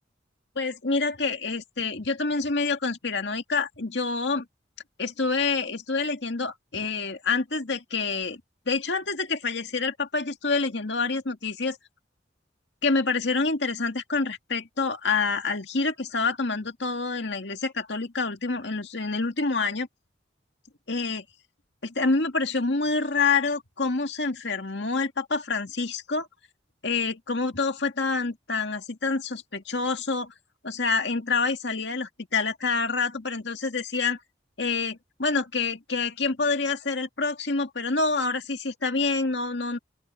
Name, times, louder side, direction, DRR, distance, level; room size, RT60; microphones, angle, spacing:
voice 1, 0.6-4.5 5.0-8.4 8.7-11.8 12.8-19.9 20.9-21.2 21.8-26.3 26.8-30.3 30.6-34.2 34.6-39.8, left 4 dB, 70° left, 2.1 m, -27 dB
open air
head